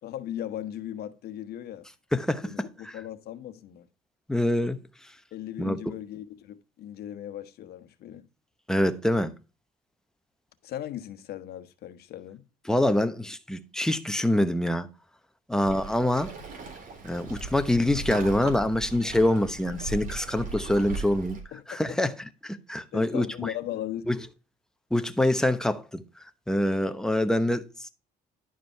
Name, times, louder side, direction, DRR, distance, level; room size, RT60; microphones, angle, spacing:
voice 1, 0.0-1.8 2.4-3.9 5.3-8.3 10.6-12.4 21.5-22.0 22.9-24.0, left 12 dB, 70° left, 1.2 m, -38 dB
voice 2, 2.1-2.5 2.8-2.9 4.3-4.8 5.6-5.8 8.7-9.3 12.7-14.9 15.5-16.3 17.0-21.4 21.7-22.1 22.4-23.5 24.1-24.2 24.9-26.0 26.5-27.9, left 1 dB, 5° left, 0.9 m, -25 dB
Waves surf, 15.6-21.4, right 3 dB, 50° right, 3.7 m, -38 dB
11.5 x 5.0 x 4.5 m
cardioid pair, 110°, 17 cm